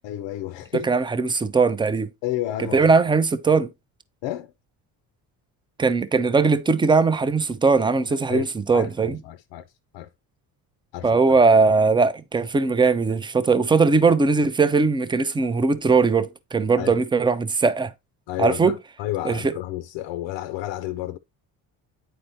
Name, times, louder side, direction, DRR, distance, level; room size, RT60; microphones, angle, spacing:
voice 1, 0.0-1.0 2.2-2.9 4.2-4.5 8.3-9.6 9.9-10.1 10.9-11.2 16.8-17.0 18.3-21.2, left 14 dB, 65° left, 0.5 m, -31 dB
voice 2, 0.7-2.1 2.6-3.7 5.8-9.2 11.0-17.9 18.4-18.8 19.2-19.6, right 4 dB, 10° right, 0.4 m, -20 dB
9.0 x 4.2 x 2.7 m
hypercardioid pair, 60°, 48 cm